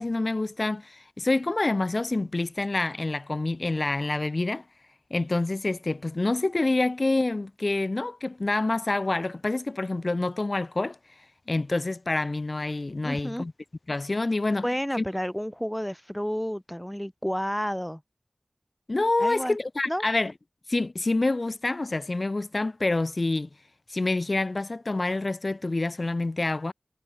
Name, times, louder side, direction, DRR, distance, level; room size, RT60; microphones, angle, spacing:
voice 1, 0.0-4.6 5.1-11.0 11.5-13.5 13.9-14.6 15.0-15.1 18.9-20.3 20.7-23.5 23.9-26.7, left 2 dB, 55° left, 4.8 m, -27 dB
voice 2, 13.0-13.5 14.6-18.0 19.2-19.6 19.9-20.0, equal, 5° left, 6.2 m, -30 dB
wide cardioid pair, 60°, 0 cm